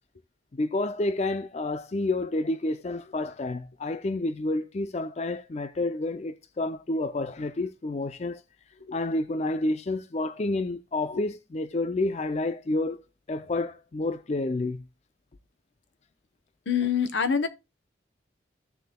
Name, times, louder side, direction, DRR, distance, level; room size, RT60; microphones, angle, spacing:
voice 1, 0.5-8.4 8.9-13.0 13.3-14.8, left 2 dB, 35° left, 0.4 m, -29 dB
voice 2, 16.7-17.5, left 6 dB, 75° left, 1.0 m, -26 dB
15.0 x 6.5 x 2.2 m
head